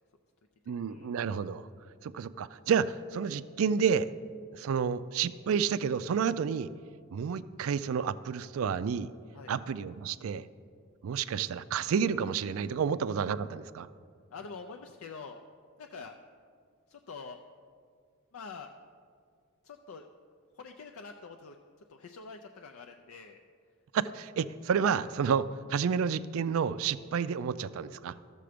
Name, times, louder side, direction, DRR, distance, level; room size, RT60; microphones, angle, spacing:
voice 1, 0.7-1.7 2.0-4.1 4.5-6.7 7.1-9.1 9.5-10.5 11.0-13.9 23.9-28.2, right 7 dB, 65° right, 16 dB, 0.3 m, -30 dB
voice 2, 14.3-15.4 15.8-16.2 16.9-17.4 18.3-18.7 19.6-20.1 20.6-21.6 21.9-23.4, left 4 dB, 70° left, 4 dB, 0.5 m, -45 dB
13.5 x 6.8 x 5.0 m, 2.2 s
head